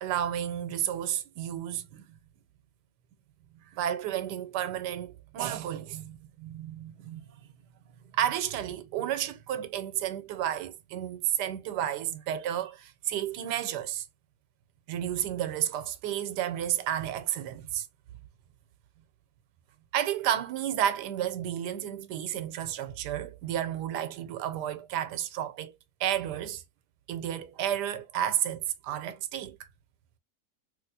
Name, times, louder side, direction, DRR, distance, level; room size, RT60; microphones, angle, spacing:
voice 1, 0.0-2.0 3.7-7.2 8.1-14.1 14.9-17.9 19.9-25.7 26.0-26.6 27.1-29.7, right 11 dB, 85° right, 1.2 m, -32 dB
3.3 x 2.8 x 2.6 m
omnidirectional pair, 1.8 m